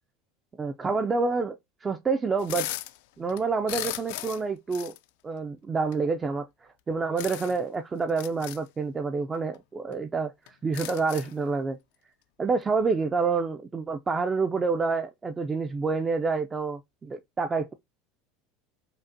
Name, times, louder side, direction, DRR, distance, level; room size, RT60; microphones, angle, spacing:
voice 1, 0.6-1.6 1.8-2.7 3.2-4.9 5.2-11.8 12.4-17.7, right 4 dB, 20° right, 0.3 m, -28 dB
sound 1, 2.4-3.0 3.3-4.4 4.7-5.0 5.9-6.0 7.2-7.6 8.1-8.6 9.5-9.6 9.9-10.0 10.5-11.4, left 15 dB, 75° left, 0.3 m, -36 dB
5.1 x 2.1 x 2.6 m
supercardioid pair, 135°, 0 cm